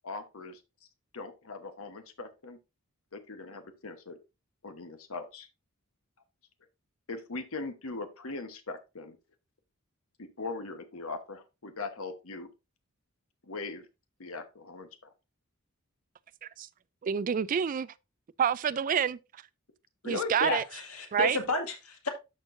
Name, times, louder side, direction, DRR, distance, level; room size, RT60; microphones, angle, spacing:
voice 1, 0.0-0.6 1.1-2.6 3.1-4.2 4.6-5.5 7.1-9.2 10.2-12.5 13.4-13.9 14.2-15.1 20.0-20.3, left 3 dB, 70° left, 1.1 m, -40 dB
voice 2, 17.0-17.9 18.4-19.2 20.0-20.6 21.1-21.4, right 8 dB, 40° right, 0.3 m, -28 dB
voice 3, 20.4-22.1, left 2 dB, 90° left, 2.1 m, -31 dB
12.5 x 4.5 x 2.6 m
head